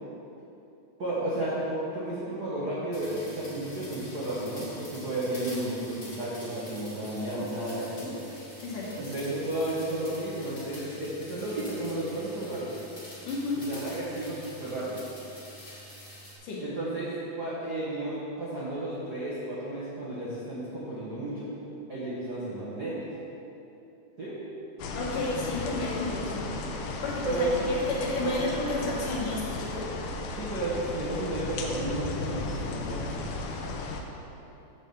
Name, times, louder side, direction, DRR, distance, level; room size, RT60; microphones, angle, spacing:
voice 1, 1.0-8.2 8.9-12.7 13.6-15.0 16.6-21.5 21.9-23.0 24.2-24.4 27.2-27.8 28.2-28.3 30.3-33.1, right 1 dB, 80° right, -9 dB, 0.8 m, -33 dB
sound 1, 2.9-16.3, equal, 45° left, 0.5 m, -46 dB
voice 2, 8.6-9.0 13.3-13.6 16.4-16.6 24.9-26.5 27.0-29.9, left 2 dB, 65° left, -5 dB, 2.9 m, -32 dB
sound 2, 24.8-34.0, left 3 dB, 90° left, 1.6 m, -35 dB
7.3 x 5.3 x 6.9 m, 2.9 s
omnidirectional pair, 4.1 m